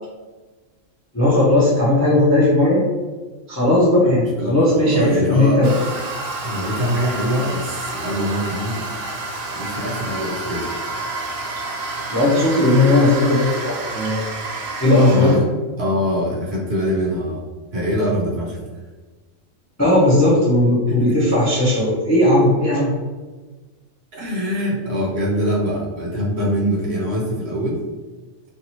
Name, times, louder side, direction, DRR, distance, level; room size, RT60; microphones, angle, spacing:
voice 1, 1.1-2.8 3.5-5.7 12.1-14.3 14.8-15.3 19.8-22.9, left 1 dB, 20° left, -7 dB, 0.5 m, -16 dB
voice 2, 4.0-5.6 6.4-8.9 9.5-10.7 15.1-15.5 15.8-17.4 17.7-18.6 20.9-21.3 24.1-27.8, equal, 60° right, -4 dB, 0.9 m, -23 dB
Toilet flush, 5.6-15.4, right 2 dB, 90° right, 1.0 m, -29 dB
2.7 x 2.6 x 2.9 m, 1.3 s
omnidirectional pair, 1.4 m